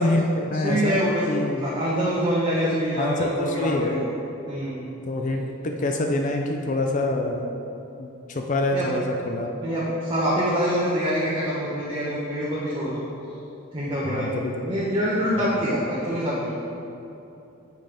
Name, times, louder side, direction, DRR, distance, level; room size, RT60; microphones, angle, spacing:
voice 1, 0.0-1.7 3.0-4.0 5.1-7.7 8.0-9.6 14.0-14.9 15.4-15.5, left 2 dB, 35° left, 2 dB, 0.5 m, -26 dB
voice 2, 0.6-1.3 1.6-4.1 4.5-4.9 8.7-8.9 9.6-13.0 13.7-16.5, equal, 25° right, -8 dB, 1.1 m, -25 dB
8.9 x 7.6 x 3.5 m, 2.9 s
head